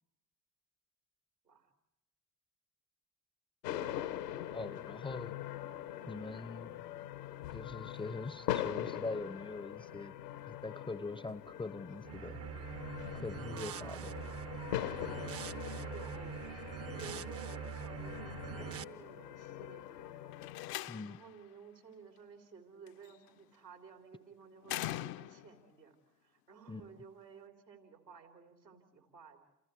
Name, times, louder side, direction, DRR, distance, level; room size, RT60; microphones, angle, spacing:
sound 1, 3.6-20.7, left 12 dB, 70° left, 1.3 m, -42 dB
voice 1, 4.5-5.4 6.0-6.7 7.5-10.1 10.5-12.4 13.1-14.1 20.9-21.2 26.7-26.9, left 3 dB, 10° left, 17 dB, 0.7 m, -42 dB
sound 2, 12.0-18.8, right 9 dB, 30° right, 0.8 m, -44 dB
voice 2, 13.3-14.2 15.5-16.4 16.9-20.4 21.0-26.0 26.2-29.4, right 6 dB, 85° right, 4 dB, 3.5 m, -54 dB
Slam, 20.3-21.4 22.9-23.3 24.6-25.6, left 15 dB, 45° left, 0.8 m, -41 dB
29.0 x 27.0 x 4.6 m, 0.88 s
figure-of-eight pair, 60°, 49 cm